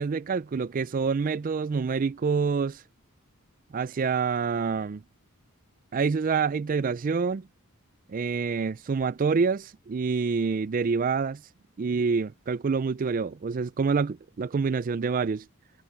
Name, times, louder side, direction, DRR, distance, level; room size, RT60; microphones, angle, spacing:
voice 1, 0.0-2.8 3.7-5.0 5.9-7.5 8.1-11.4 11.8-15.4, right 5 dB, 35° right, 0.3 m, -27 dB
head